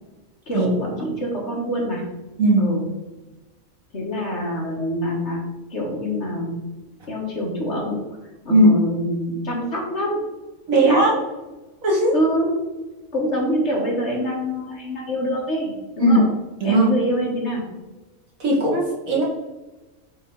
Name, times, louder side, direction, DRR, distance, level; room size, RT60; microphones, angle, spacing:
voice 1, 0.5-2.0 2.6-2.9 3.9-6.5 7.1-8.2 8.5-10.3 10.7-11.1 12.1-12.6 13.1-16.3 16.6-17.7, equal, 50° left, -2 dB, 2.0 m, -25 dB
voice 2, 2.4-2.7 8.5-8.7 10.7-11.1 11.8-12.1 16.0-16.2 16.6-16.9 18.4-19.2, right 1 dB, 65° right, -2 dB, 2.3 m, -17 dB
8.5 x 4.1 x 4.0 m, 1.1 s
omnidirectional pair, 1.5 m